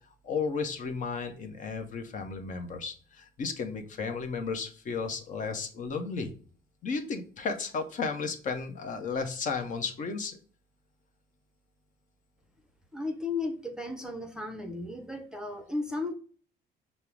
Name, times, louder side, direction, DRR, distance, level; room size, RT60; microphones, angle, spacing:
voice 1, 0.2-6.3 6.8-10.4, left 5 dB, 50° left, 5 dB, 0.8 m, -34 dB
voice 2, 12.9-16.1, left 3 dB, 5° right, 6 dB, 0.6 m, -34 dB
5.4 x 2.0 x 4.6 m, 0.42 s
cardioid pair, 110°, 17 cm